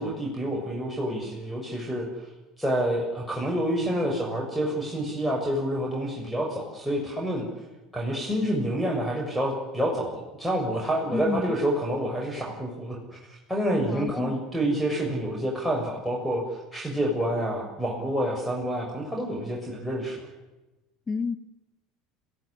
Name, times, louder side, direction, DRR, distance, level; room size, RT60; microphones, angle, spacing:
voice 1, 0.0-2.0 2.6-7.4 7.9-20.3, right 1 dB, 5° left, 0 dB, 6.6 m, -28 dB
voice 2, 11.1-11.6 13.9-14.4 21.1-21.4, left 5 dB, 25° left, 12 dB, 1.7 m, -30 dB
27.0 x 16.5 x 9.9 m, 1.1 s
figure-of-eight pair, 70°, 0 cm